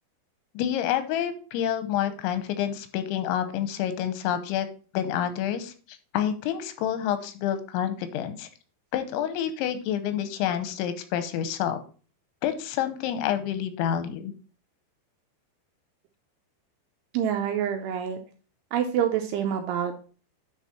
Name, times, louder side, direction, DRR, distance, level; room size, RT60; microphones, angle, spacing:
voice 1, 0.5-4.7 4.9-8.5 8.9-11.8 12.4-14.3, left 10 dB, 90° left, 10 dB, 3.1 m, -28 dB
voice 2, 17.1-18.2 18.7-20.1, right 9 dB, 85° right, 5 dB, 2.5 m, -27 dB
10.0 x 4.0 x 4.1 m, 0.38 s
omnidirectional pair, 5.3 m